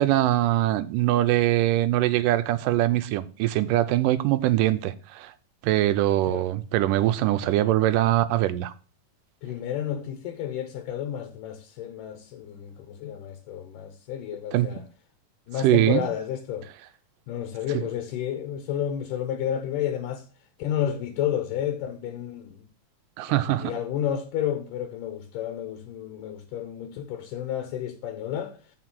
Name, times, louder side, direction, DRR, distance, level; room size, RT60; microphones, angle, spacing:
voice 1, 0.0-5.3 5.6-8.7 14.5-14.7 15.6-16.0 17.7-17.8 23.2-23.7, right 14 dB, 90° right, 2.3 m, -22 dB
voice 2, 9.4-14.8 15.5-16.7 17.3-20.2 20.6-22.6 23.3-28.6, left 10 dB, 80° left, 2.5 m, -31 dB
7.3 x 6.0 x 6.2 m
omnidirectional pair, 3.8 m